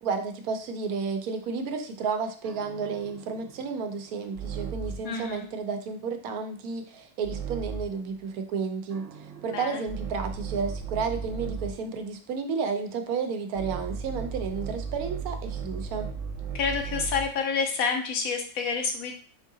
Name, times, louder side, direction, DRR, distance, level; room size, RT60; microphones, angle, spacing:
voice 1, 0.0-9.1 9.4-16.1, right 5 dB, 85° right, 6 dB, 1.1 m, -32 dB
sound 1, 2.4-5.2 7.2-8.1 8.9-11.9 13.5-17.4, right 6 dB, 65° right, 0.8 m, -36 dB
voice 2, 5.0-5.5 9.5-9.8 16.5-19.1, left 5 dB, 75° left, 3 dB, 1.2 m, -28 dB
4.0 x 3.6 x 2.7 m, 0.41 s
omnidirectional pair, 1.5 m